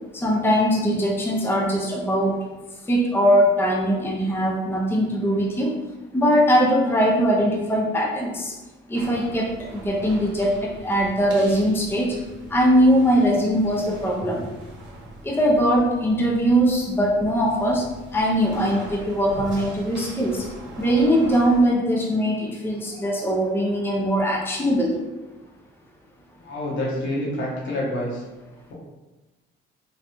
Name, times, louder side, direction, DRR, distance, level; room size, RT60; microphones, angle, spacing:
voice 1, 0.1-2.4 2.8-5.7 6.1-8.5 8.9-12.2 12.5-14.4 15.2-17.8 18.1-20.4 20.8-25.0, equal, 10° left, -2 dB, 0.6 m, -21 dB
sound 1, 8.9-21.6, right 1 dB, 65° right, 0.8 m, -41 dB
voice 2, 26.4-28.2, left 1 dB, 70° left, -5 dB, 1.2 m, -27 dB
3.3 x 2.4 x 2.9 m, 1.1 s
cardioid pair, 90°, 20 cm